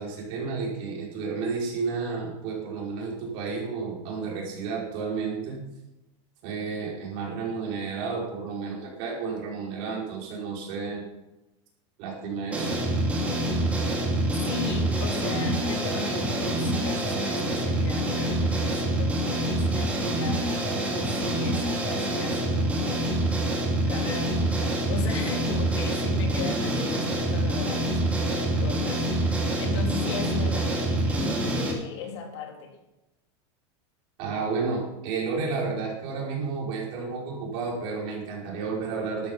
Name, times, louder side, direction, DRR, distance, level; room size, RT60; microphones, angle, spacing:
voice 1, 0.0-5.6 6.4-11.0 12.0-12.7 34.2-39.3, right 4 dB, 40° right, -2 dB, 5.1 m, -31 dB
sound 1, 12.5-31.7, right 1 dB, 10° right, 2.8 m, -26 dB
voice 2, 14.4-20.6 21.0-23.2 23.9-32.8, left 5 dB, 70° left, 2 dB, 3.4 m, -38 dB
13.5 x 12.5 x 5.5 m, 0.97 s
supercardioid pair, 175°, 15 cm